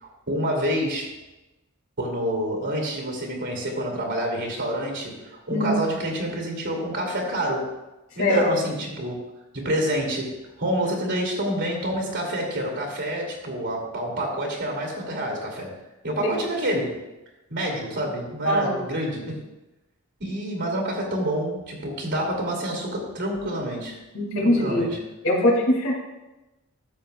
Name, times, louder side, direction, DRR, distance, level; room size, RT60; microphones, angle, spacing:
voice 1, 0.0-1.2 2.0-7.7 8.1-9.2 9.5-17.0 17.5-19.4 20.2-24.0 24.4-25.0, equal, 55° right, 0 dB, 2.5 m, -28 dB
voice 2, 18.4-18.8 24.1-24.8 25.2-25.9, left 1 dB, 65° left, -2 dB, 2.4 m, -21 dB
13.0 x 7.5 x 2.3 m, 1.0 s
head